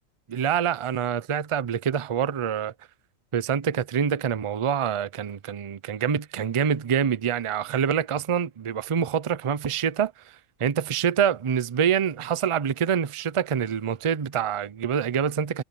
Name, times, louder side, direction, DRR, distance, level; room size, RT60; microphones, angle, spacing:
voice 1, 0.3-2.7 3.3-15.6, right 8 dB, 45° right, 0.4 m, -26 dB
omnidirectional pair, 1.4 m